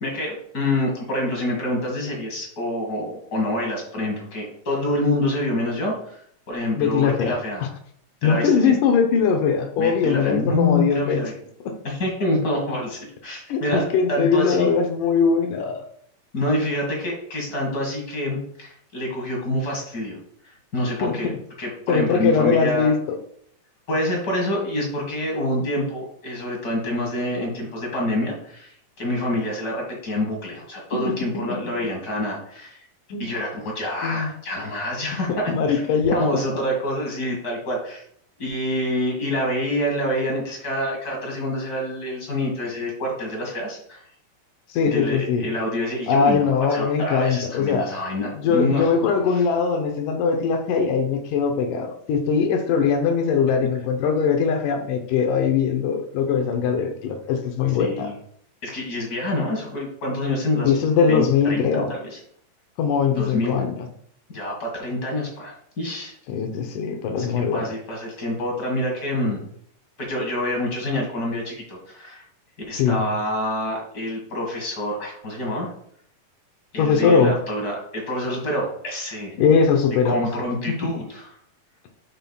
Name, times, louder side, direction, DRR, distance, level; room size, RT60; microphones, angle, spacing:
voice 1, 0.0-6.2 6.5-7.7 8.2-8.8 9.8-11.3 11.8-14.7 16.3-20.2 20.7-21.3 21.6-22.9 23.9-32.8 33.2-35.8 36.1-38.0 38.4-44.0 44.9-46.4 46.7-48.9 49.3-49.4 57.8-58.1 58.6-60.8 61.1-62.2 63.1-63.6 64.3-66.1 67.2-67.3 67.5-69.4 70.0-72.2 72.7-75.7 76.7-79.3 80.0-81.2, left 1 dB, 40° left, -1 dB, 1.3 m, -27 dB
voice 2, 6.8-7.3 8.2-11.2 11.6-11.7 13.5-15.8 21.0-21.1 21.9-23.2 33.1-33.3 34.0-34.3 35.3-36.4 44.7-45.5 46.1-47.9 48.3-58.1 60.6-61.9 62.8-63.9 66.3-67.7 72.8-73.0 76.8-77.3 79.4-80.3 80.7-80.8, left 6 dB, 75° left, 5 dB, 2.2 m, -21 dB
9.0 x 5.6 x 2.3 m, 0.66 s
omnidirectional pair, 4.0 m